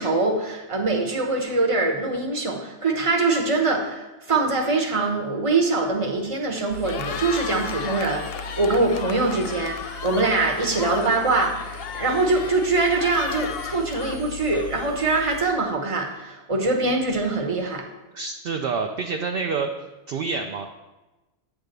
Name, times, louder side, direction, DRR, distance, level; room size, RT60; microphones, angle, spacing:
voice 1, 0.0-11.5 11.9-17.8, right 3 dB, 30° right, 1 dB, 1.0 m, -23 dB
Cheering, 6.7-15.0, left 7 dB, 65° left, 0.7 m, -34 dB
Engine, 6.7-15.4, left 2 dB, 85° right, 1.2 m, -39 dB
voice 2, 18.1-19.7 20.1-20.7, right 4 dB, 60° right, 3 dB, 0.7 m, -27 dB
9.1 x 3.5 x 6.5 m, 1.1 s
omnidirectional pair, 1.2 m